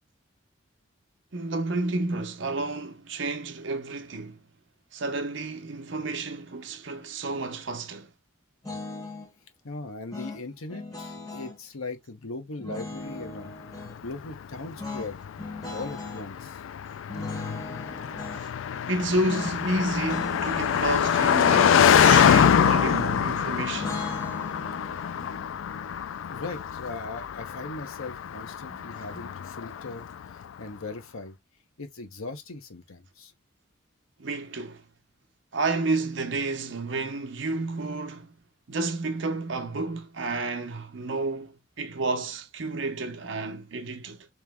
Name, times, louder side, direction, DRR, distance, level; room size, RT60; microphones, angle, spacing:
voice 1, 1.3-4.4 4.9-8.1 18.9-24.0 28.7-29.3 34.2-34.8 35.5-38.4 38.7-44.3, right 2 dB, 60° right, 0.7 m, -31 dB
sound 1, 8.6-9.3 10.1-11.6 12.6-14.0 14.8-16.3 17.1-18.4 19.2-19.6 19.9-20.7 21.5-23.3 23.8-26.8, left 2 dB, 15° left, 1.1 m, -39 dB
voice 2, 9.6-13.5 14.0-15.2 15.7-16.6 26.3-31.4 31.8-33.3, left 3 dB, 85° left, 1.0 m, -39 dB
Car passing by, 13.8-30.2, left 8 dB, 70° left, 0.3 m, -25 dB
3.2 x 3.0 x 3.5 m
head